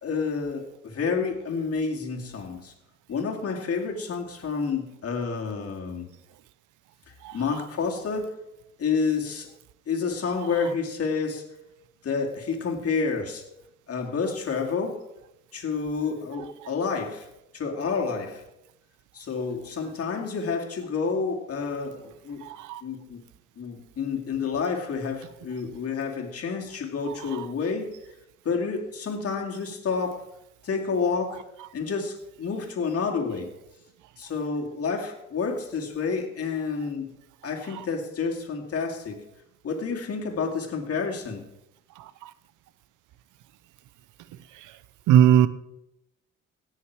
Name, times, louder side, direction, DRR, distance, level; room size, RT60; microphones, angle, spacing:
voice 1, 0.0-2.7 3.1-6.1 7.3-8.3 8.8-9.5 9.9-11.4 12.0-13.4 13.9-15.0 15.5-17.3 17.5-18.4 19.1-22.4 22.8-23.2 23.6-27.9 28.4-30.3 30.6-31.4 31.7-33.5 34.2-37.1 37.4-39.2 39.6-41.5, left 5 dB, 50° left, 2.4 m, -29 dB
voice 2, 22.4-22.8 45.1-45.5, right 10 dB, 85° right, 0.7 m, -18 dB
17.5 x 6.4 x 4.7 m
cardioid pair, 90°, 30 cm